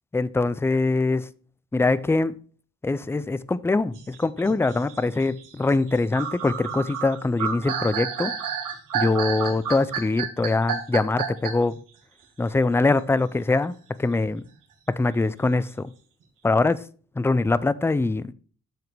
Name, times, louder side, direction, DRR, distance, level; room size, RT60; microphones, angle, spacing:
voice 1, 0.1-1.3 1.7-2.3 2.8-8.3 8.9-11.8 12.4-14.4 14.9-15.9 16.4-16.8 17.2-18.3, left 3 dB, 10° left, 0.3 m, -23 dB
sound 1, 3.9-11.7, right 7 dB, 75° right, 1.8 m, -30 dB
7.8 x 7.2 x 3.3 m
cardioid pair, 135°, 32 cm